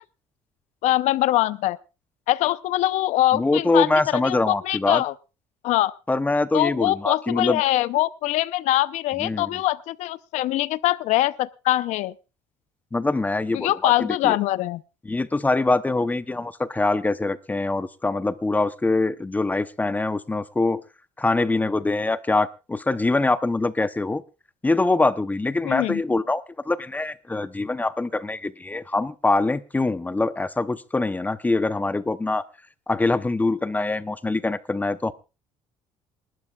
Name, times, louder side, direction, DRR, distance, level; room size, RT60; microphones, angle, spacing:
voice 1, 0.8-1.8 2.3-5.1 5.6-5.9 6.5-12.1 13.5-14.8 25.6-26.0, left 15 dB, 75° left, 0.7 m, -23 dB
voice 2, 3.3-5.0 6.1-7.6 9.2-9.5 12.9-14.4 15.0-20.8 21.2-24.2 24.6-32.5 32.9-35.1, left 2 dB, 15° left, 0.8 m, -24 dB
27.5 x 12.5 x 2.4 m
cardioid pair, 110°, 12 cm